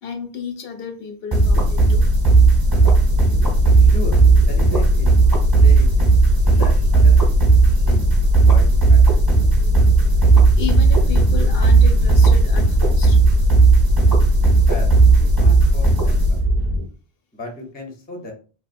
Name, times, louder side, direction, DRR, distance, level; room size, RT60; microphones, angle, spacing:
voice 1, 0.0-2.1 6.5-6.6 10.6-13.2, left 6 dB, 70° left, 5 dB, 0.7 m, -32 dB
sound 1, 1.3-16.8, right 3 dB, 25° right, 0.8 m, -14 dB
sound 2, 2.8-16.9, right 1 dB, 65° right, 0.7 m, -33 dB
voice 2, 3.8-5.1 5.6-5.9 6.5-7.2 7.9-8.1 8.4-9.0 14.6-16.4 17.3-18.3, left 1 dB, 10° left, 1 dB, 0.4 m, -35 dB
2.9 x 2.1 x 2.5 m, 0.38 s
omnidirectional pair, 1.1 m